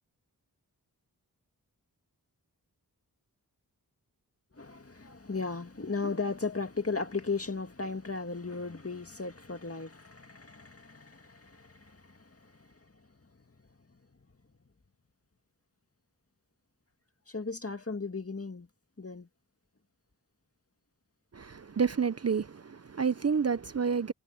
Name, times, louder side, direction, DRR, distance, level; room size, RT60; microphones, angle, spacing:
voice 1, 4.5-13.3 17.3-18.7 19.0-19.3, left 4 dB, 40° left, 2.1 m, -36 dB
voice 2, 21.3-24.1, right 6 dB, 45° right, 0.6 m, -29 dB
wide cardioid pair, 50°, 37 cm